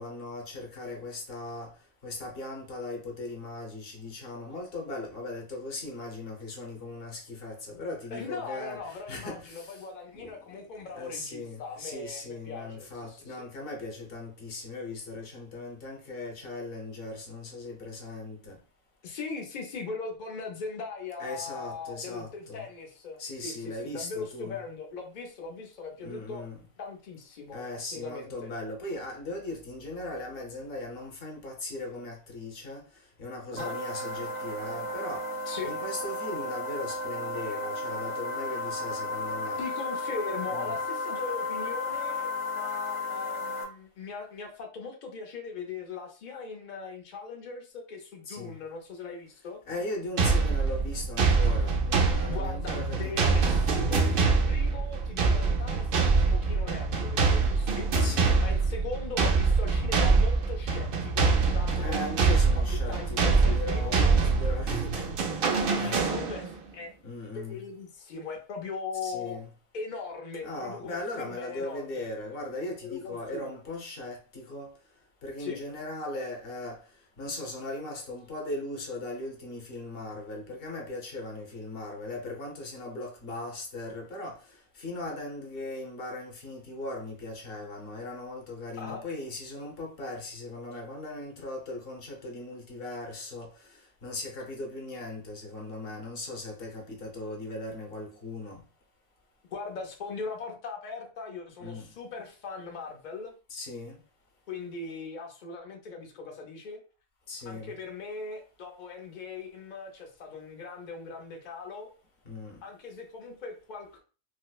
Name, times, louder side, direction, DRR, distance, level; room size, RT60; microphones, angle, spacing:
voice 1, 0.0-1.7 2.0-9.8 10.1-10.3 10.9-18.6 21.2-22.6 23.2-24.6 26.0-26.6 27.5-32.8 33.2-35.2 35.6-39.6 40.5-40.8 48.3-48.6 49.7-53.4 54.0-54.3 58.0-58.4 61.8-65.4 65.8-66.0 67.0-67.6 69.0-69.5 70.4-74.7 75.2-76.8 77.2-84.4 84.8-93.5 94.0-98.6 101.6-101.9 103.5-104.0 107.3-107.7 112.3-112.6, left 2 dB, 45° left, 0.9 m, -38 dB
voice 2, 8.1-13.5 19.0-26.4 26.8-28.5 33.5-33.8 35.5-35.7 38.0-38.1 39.6-42.3 42.6-49.6 52.2-57.9 58.4-62.0 62.5-63.9 65.8-66.5 66.7-66.9 67.3-69.4 69.7-72.1 72.8-73.6 75.4-75.6 88.8-89.0 99.5-103.3 104.5-106.8 107.5-111.9 112.6-114.0, left 4 dB, 75° left, 0.4 m, -40 dB
sound 1, 33.6-43.6, left 2 dB, 60° right, 0.9 m, -33 dB
sound 2, 50.2-66.6, right 4 dB, 80° right, 0.4 m, -25 dB
4.7 x 2.0 x 2.3 m
omnidirectional pair, 1.6 m